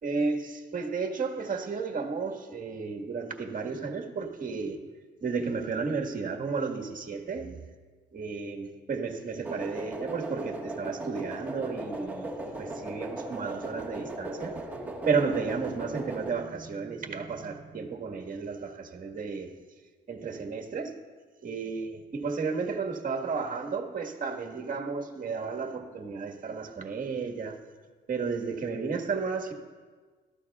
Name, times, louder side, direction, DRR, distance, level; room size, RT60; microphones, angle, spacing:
voice 1, 0.0-4.8 5.2-7.6 8.1-14.6 15.0-19.5 20.1-20.9 21.4-21.9 22.1-27.6 28.1-29.5, right 4 dB, 45° right, 3 dB, 1.6 m, -33 dB
sound 1, 9.4-16.3, right 1 dB, 10° right, 1.5 m, -38 dB
18.0 x 14.0 x 2.4 m, 1.5 s
cardioid pair, 90°, 20 cm